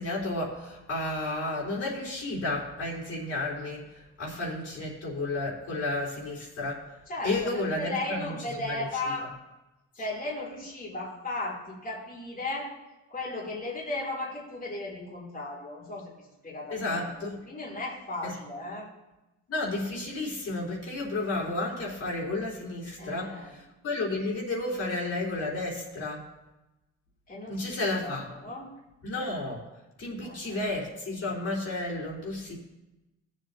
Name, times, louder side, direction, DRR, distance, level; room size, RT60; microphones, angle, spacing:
voice 1, 0.0-6.8 7.2-8.8 16.7-17.4 18.2-18.3 19.5-26.3 27.5-28.3 29.0-29.6 30.0-32.5, left 2 dB, 55° left, -4 dB, 3.8 m, -32 dB
voice 2, 7.1-9.3 9.9-12.7 13.1-17.1 17.4-18.9 23.0-23.5 27.3-28.7 30.2-30.6, left 2 dB, 30° left, -6 dB, 3.2 m, -36 dB
17.5 x 7.6 x 2.8 m, 1.0 s
cardioid pair, 90°, 30 cm